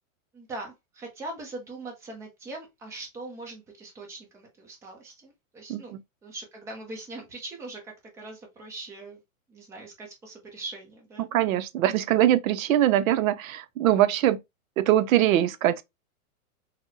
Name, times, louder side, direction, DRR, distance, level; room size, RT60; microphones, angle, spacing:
voice 1, 0.3-9.2 9.5-11.3, right 2 dB, 5° right, 0.4 m, -41 dB
voice 2, 11.3-14.4 14.8-15.8, right 13 dB, 70° right, 0.5 m, -22 dB
4.0 x 2.0 x 2.6 m
hypercardioid pair, 140°, 43 cm